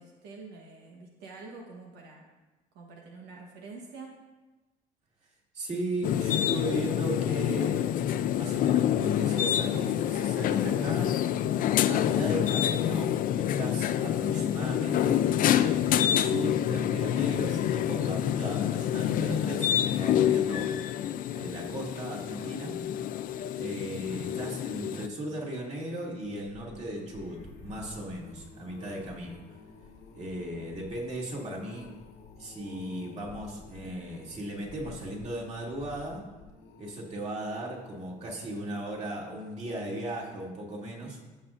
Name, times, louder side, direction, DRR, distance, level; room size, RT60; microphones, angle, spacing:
voice 1, 0.0-2.2 2.7-4.1, right 3 dB, 90° right, -1 dB, 1.2 m, -46 dB
voice 2, 5.5-7.8 8.3-11.2 11.7-20.7 21.3-22.8 23.6-29.4 30.1-31.9 32.4-36.3 36.8-41.2, right 1 dB, 40° right, -3 dB, 2.4 m, -37 dB
sound 1, 6.0-25.1, left 11 dB, 55° left, 0.4 m, -27 dB
sound 2, 26.0-39.4 39.9-40.2 40.5-40.6, left 4 dB, 80° left, 1.2 m, -51 dB
15.5 x 5.6 x 2.5 m, 1.2 s
cardioid pair, 110°, 17 cm